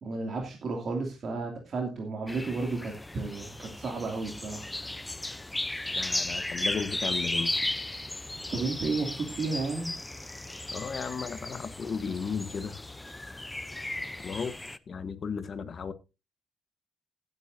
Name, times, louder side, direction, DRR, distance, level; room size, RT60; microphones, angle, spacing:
voice 1, 0.0-4.6 8.5-9.9, right 3 dB, 50° right, 2.6 m, -32 dB
sound 1, 2.3-14.8, left 2 dB, 10° left, 0.6 m, -35 dB
voice 2, 5.9-7.5 10.7-12.8 14.2-14.6 14.9-15.9, left 6 dB, 50° left, 1.2 m, -35 dB
16.0 x 9.3 x 2.7 m
cardioid pair, 90°, 0 cm